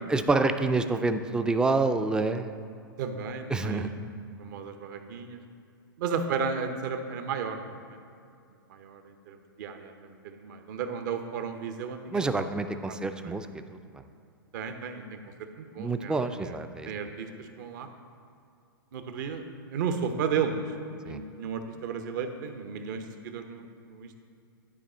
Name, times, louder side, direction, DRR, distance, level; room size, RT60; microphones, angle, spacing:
voice 1, 0.1-2.5 3.5-3.9 12.1-13.5 15.8-16.9 21.1-21.2, right 3 dB, 5° right, 9 dB, 0.3 m, -27 dB
voice 2, 3.0-3.9 4.4-5.4 6.0-8.0 8.7-12.5 12.9-13.0 13.2-13.3 14.5-16.6 16.9-17.9 18.9-19.4 19.7-24.2, right 6 dB, 55° right, 7 dB, 0.8 m, -34 dB
11.0 x 4.8 x 4.3 m, 2.4 s
hypercardioid pair, 115°, 12 cm